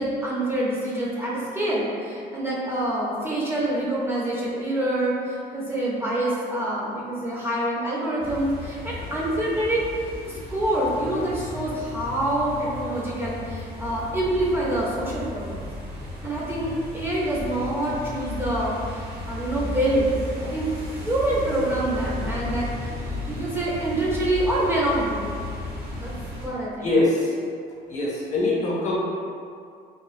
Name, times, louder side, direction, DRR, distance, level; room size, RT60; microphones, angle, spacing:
voice 1, 0.0-9.8 10.3-15.6 16.2-20.1 20.4-20.7 21.0-23.0 23.3-25.3 25.9-26.1 26.4-26.9, right 1 dB, 15° right, -6 dB, 0.5 m, -26 dB
sound 1, 8.2-26.5, left 2 dB, 85° right, 1.0 m, -34 dB
voice 2, 26.8-27.3 27.9-29.0, left 2 dB, 45° left, -5 dB, 0.8 m, -23 dB
3.0 x 2.2 x 2.4 m, 2.3 s
cardioid pair, 110°, 17 cm